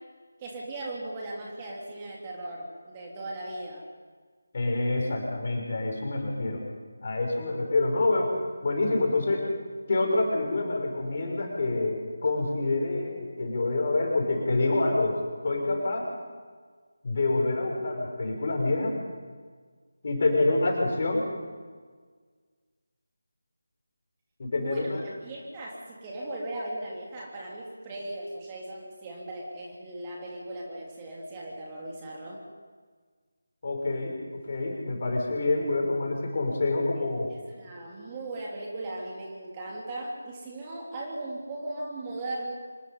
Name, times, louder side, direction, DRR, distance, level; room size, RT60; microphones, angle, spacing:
voice 1, 0.4-3.8 24.5-25.0 25.2-32.4 37.0-37.1 37.5-42.5, right 2 dB, 20° right, -3 dB, 3.2 m, -38 dB
voice 2, 4.5-6.6 7.0-9.5 9.9-15.2 15.4-16.1 17.0-19.0 20.0-21.3 24.4-25.0 33.6-37.3, left 2 dB, 40° left, 1 dB, 6.1 m, -27 dB
26.0 x 20.5 x 5.6 m, 1.5 s
figure-of-eight pair, 160°, 0 cm